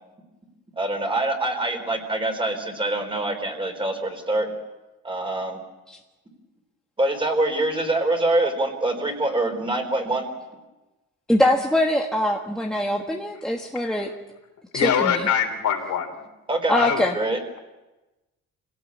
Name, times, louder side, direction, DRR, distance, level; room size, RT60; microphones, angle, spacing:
voice 1, 0.8-4.5 5.0-5.6 7.0-10.3 16.5-16.7 17.1-17.4, right 2 dB, 15° right, 4 dB, 4.2 m, -24 dB
voice 2, 11.3-14.1 14.7-15.3 16.7-17.1, left 1 dB, ahead, 2 dB, 1.4 m, -23 dB
voice 3, 14.7-16.1 16.7-17.0, left 8 dB, 60° left, 4 dB, 3.9 m, -23 dB
26.0 x 17.5 x 8.6 m, 1.1 s
cardioid pair, 135°, 32 cm